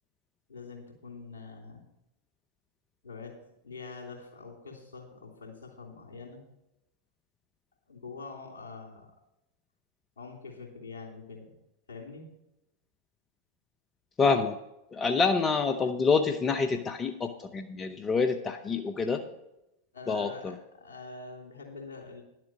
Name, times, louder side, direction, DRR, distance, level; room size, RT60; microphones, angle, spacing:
voice 1, 0.5-1.8 3.0-3.4 3.6-6.4 7.9-9.1 10.2-11.5 11.9-12.2 19.1-19.3 19.9-22.2, left 4 dB, 75° left, -1 dB, 3.2 m, -45 dB
voice 2, 14.2-14.6 14.9-19.2 20.1-20.5, left 4 dB, 25° left, 7 dB, 0.7 m, -27 dB
11.0 x 7.6 x 6.1 m, 0.89 s
figure-of-eight pair, 90°, 0 cm